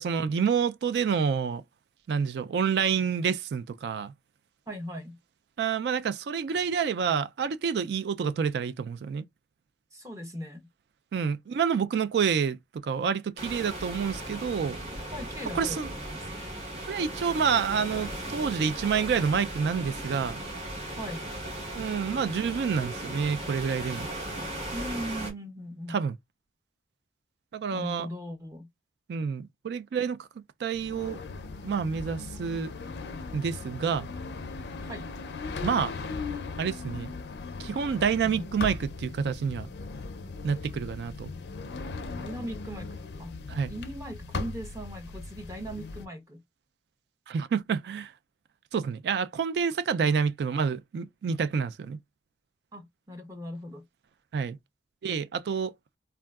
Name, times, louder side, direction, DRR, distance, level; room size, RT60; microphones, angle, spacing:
voice 1, 0.0-1.6 2.1-4.1 5.6-9.2 11.1-14.8 15.5-15.9 16.9-20.4 21.7-24.1 25.9-26.2 27.5-28.1 29.1-30.3 30.6-31.2 31.6-32.7 33.3-34.1 35.6-35.9 36.6-37.1 37.6-39.7 40.4-41.3 43.5-43.7 47.3-48.1 48.7-52.0 54.3-54.6 55.0-55.7, right 6 dB, 70° right, 0.3 m, -28 dB
voice 2, 4.7-5.2 9.9-10.7 15.1-16.2 20.9-21.3 24.7-26.0 27.7-28.7 34.8-35.1 38.2-38.5 42.1-42.9 43.2-46.4 49.9-50.1 52.7-53.9, equal, 20° right, 0.6 m, -39 dB
sound 1, 13.4-25.3, right 1 dB, 35° right, 1.3 m, -37 dB
sound 2, 30.7-46.1, left 4 dB, 70° left, 0.4 m, -38 dB
3.5 x 2.2 x 2.3 m
head